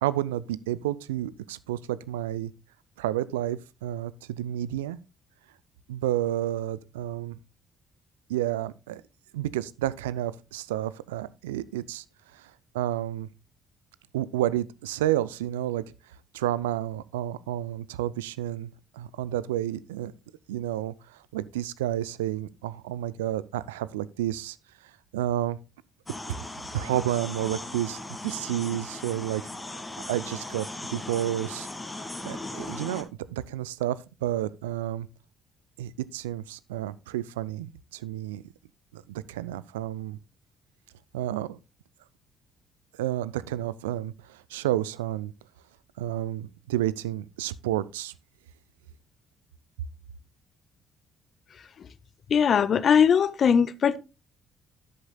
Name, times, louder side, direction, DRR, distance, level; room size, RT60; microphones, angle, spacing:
voice 1, 0.0-2.5 3.0-5.0 5.9-7.4 8.3-9.0 9.3-12.0 12.3-13.3 14.1-15.8 16.3-20.1 20.5-24.6 25.1-25.6 26.7-29.4 30.1-31.7 32.2-33.1 33.3-35.1 35.8-38.4 38.9-40.2 41.1-41.6 43.0-45.3 46.0-48.1, right 13 dB, 80° right, 0.3 m, -30 dB
sound 1, 26.1-33.0, left 2 dB, 20° left, 1.8 m, -38 dB
voice 2, 52.3-54.0, left 7 dB, 50° left, 0.6 m, -20 dB
11.0 x 8.8 x 2.2 m
figure-of-eight pair, 45°, 0 cm